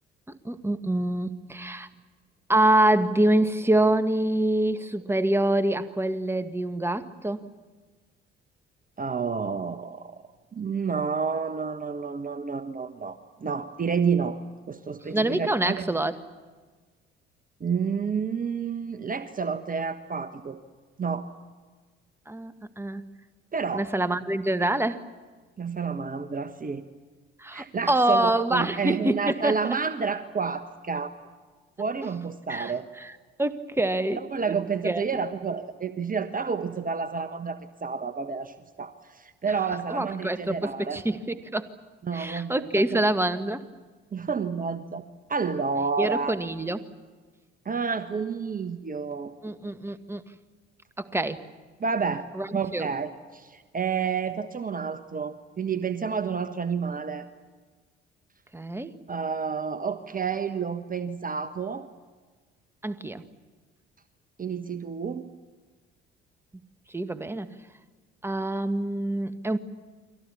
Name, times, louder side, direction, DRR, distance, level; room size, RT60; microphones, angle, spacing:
voice 1, 0.3-1.9 2.5-7.4 15.1-16.2 22.3-23.0 23.7-25.0 27.4-29.8 32.5-33.1 33.4-34.2 34.8-35.0 39.9-41.7 42.1-43.6 46.0-46.8 49.4-50.2 51.0-51.4 52.4-52.5 52.7-52.9 58.5-58.9 62.8-63.2 66.9-67.5 68.2-69.6, right 1 dB, 10° right, 11 dB, 1.6 m, -26 dB
voice 2, 9.0-10.2 10.5-14.4 14.7-15.9 17.6-20.6 21.0-21.3 23.5-23.9 25.6-26.8 27.5-31.1 31.8-32.9 34.1-41.0 42.0-43.0 44.1-45.0 45.3-46.3 47.6-49.3 51.8-52.3 52.5-57.3 59.1-61.9 64.4-65.3, right 5 dB, 30° right, 10 dB, 1.4 m, -30 dB
29.5 x 23.5 x 7.2 m, 1.4 s
figure-of-eight pair, 50°, 30 cm